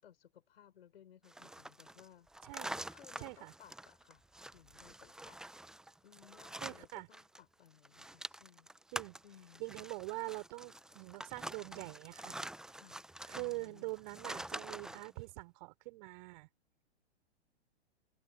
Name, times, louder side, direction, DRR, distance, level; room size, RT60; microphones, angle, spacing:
voice 1, 0.0-2.3 2.9-4.2 4.5-5.4 6.0-8.7 9.2-9.9 12.8-13.0 13.3-13.9, left 10 dB, 60° left, 6.3 m, -60 dB
sound 1, 1.3-7.4 7.7-15.1, right 1 dB, ahead, 0.8 m, -47 dB
voice 2, 3.2-3.5 6.6-7.1 8.9-9.2 9.6-12.4 13.3-16.5, right 23 dB, 45° right, 5.0 m, -44 dB
figure-of-eight pair, 110°, 33 cm